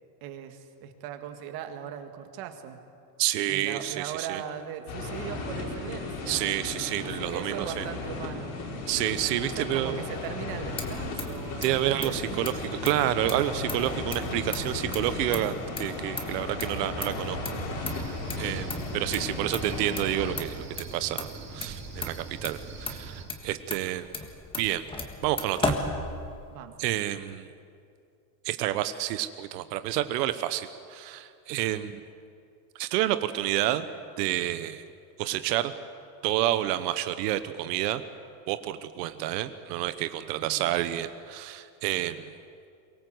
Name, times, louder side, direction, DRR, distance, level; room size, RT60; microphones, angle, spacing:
voice 1, 0.2-2.8 3.5-6.5 7.0-8.6 9.4-12.5 19.3-19.5 26.5-26.8 39.2-39.3 40.4-40.7, right 9 dB, 45° right, 7 dB, 2.0 m, -39 dB
voice 2, 3.2-4.4 6.3-7.8 8.9-10.0 11.6-17.4 17.8-17.9 18.4-24.1 24.6-24.9 25.2-25.7 26.8-27.5 28.4-32.0 32.8-33.9 34.2-34.8 35.2-35.7 36.2-38.0 38.5-42.3, right 13 dB, 75° right, 11 dB, 1.1 m, -29 dB
sound 1, 4.9-20.4, left 3 dB, 65° left, 5.3 m, -35 dB
Motor vehicle (road), 10.4-26.6, left 2 dB, 10° left, 1.6 m, -37 dB
Cricket, 17.9-23.2, right 4 dB, 20° right, 5.0 m, -42 dB
23.5 x 18.5 x 8.0 m, 2.4 s
supercardioid pair, 155°, 49 cm